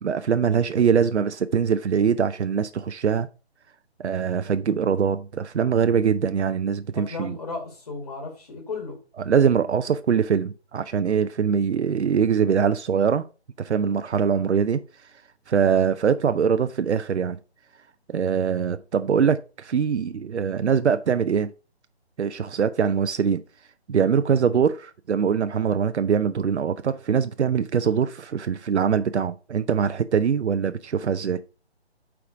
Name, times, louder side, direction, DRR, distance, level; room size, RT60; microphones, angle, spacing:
voice 1, 0.0-3.3 4.0-7.4 9.2-13.2 13.6-14.8 15.5-17.4 18.1-21.5 22.2-23.4 23.9-31.4, right 7 dB, 80° right, 0.6 m, -23 dB
voice 2, 7.0-9.0, left 4 dB, 40° left, 2.1 m, -34 dB
5.9 x 4.9 x 5.0 m
hypercardioid pair, 175°, 33 cm